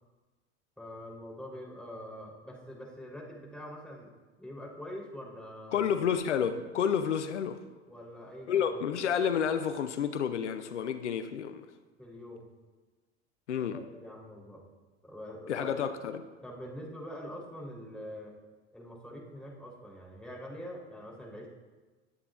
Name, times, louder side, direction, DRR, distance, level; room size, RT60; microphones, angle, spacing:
voice 1, 0.8-4.1 4.4-5.9 7.8-8.8 12.0-12.4 13.5-14.6 15.0-15.8 16.4-18.3 18.7-21.5, equal, 5° left, -3 dB, 3.6 m, -44 dB
voice 2, 5.7-7.6 8.5-11.7 13.5-13.8 15.5-16.2, left 8 dB, 85° left, 10 dB, 0.7 m, -30 dB
19.5 x 8.8 x 2.5 m, 1.3 s
hypercardioid pair, 80°, 34 cm